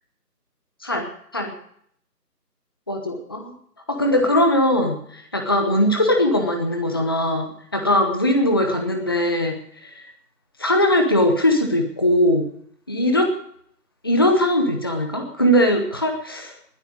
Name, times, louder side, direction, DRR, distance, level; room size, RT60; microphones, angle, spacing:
voice 1, 0.8-1.5 2.9-3.5 3.9-10.0 10.6-12.5 12.9-13.3 14.0-16.5, left 1 dB, 15° left, 4 dB, 0.8 m, -20 dB
20.0 x 9.1 x 6.2 m, 0.66 s
figure-of-eight pair, 155°, 48 cm